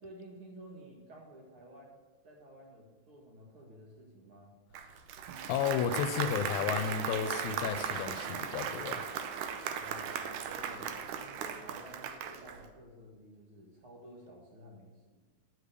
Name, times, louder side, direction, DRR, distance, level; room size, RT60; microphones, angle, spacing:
voice 1, 0.0-1.9 2.2-4.5 9.7-15.2, right 1 dB, 50° right, -2 dB, 2.3 m, -52 dB
Applause, 4.7-12.7, right 7 dB, 80° right, 2.2 m, -37 dB
voice 2, 5.5-9.0, left 8 dB, 80° left, 10 dB, 1.9 m, -33 dB
12.0 x 5.0 x 6.7 m, 1.3 s
omnidirectional pair, 3.5 m